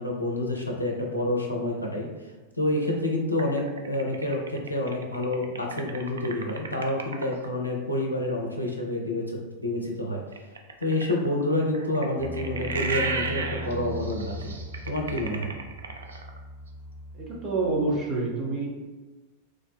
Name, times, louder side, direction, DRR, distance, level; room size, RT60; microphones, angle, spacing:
voice 1, 0.0-2.1 2.6-10.2 10.8-14.5 14.8-15.5, left 1 dB, 85° left, -1 dB, 0.5 m, -28 dB
sound 1, 3.4-7.5 10.3-16.4, right 4 dB, 70° right, 0.3 m, -34 dB
sound 2, 12.2-18.0, right 1 dB, 35° left, 0.5 m, -39 dB
voice 2, 17.1-18.7, right 3 dB, 30° right, -4 dB, 0.9 m, -27 dB
3.3 x 2.1 x 3.4 m, 1.2 s
figure-of-eight pair, 90°, 0 cm